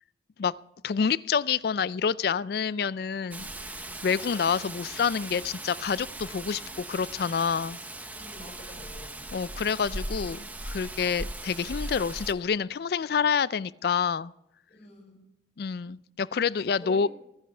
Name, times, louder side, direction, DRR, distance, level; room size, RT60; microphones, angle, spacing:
voice 1, 0.8-3.5 4.0-7.8 9.3-14.3 15.6-17.1, left 6 dB, 60° left, 19 dB, 0.4 m, -28 dB
Rain, 3.3-12.3, right 1 dB, 10° right, 0.8 m, -39 dB
voice 2, 8.1-9.3 14.7-15.2 16.8-17.1, equal, 40° left, -1 dB, 5.3 m, -47 dB
25.0 x 10.0 x 3.4 m, 0.85 s
head